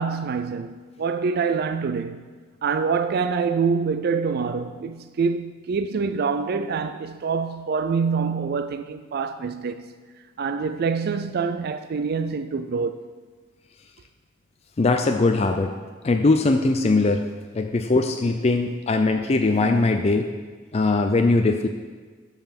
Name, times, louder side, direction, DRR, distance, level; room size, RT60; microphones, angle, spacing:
voice 1, 0.0-2.3 2.6-9.9 10.4-13.1, right 5 dB, 55° right, 0.4 m, -26 dB
voice 2, 14.8-15.7 16.0-17.3 17.5-20.3 20.7-21.7, left 3 dB, 35° left, 0.4 m, -20 dB
11.5 x 5.7 x 5.8 m
head